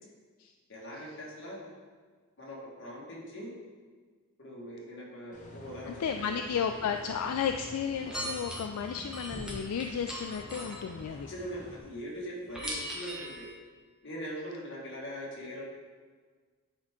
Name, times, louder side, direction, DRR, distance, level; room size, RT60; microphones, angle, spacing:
voice 1, 0.7-1.7 2.4-3.5 4.4-6.4 11.3-13.5 14.0-15.6, equal, 55° left, -4 dB, 1.8 m, -41 dB
sound 1, 5.3-11.8, left 1 dB, 35° left, 0.9 m, -48 dB
voice 2, 5.9-11.3, left 7 dB, 80° left, 6 dB, 0.3 m, -33 dB
sound 2, 8.1-11.1 12.5-13.5, equal, 5° right, 1.0 m, -39 dB
8.8 x 4.7 x 3.7 m, 1.5 s
head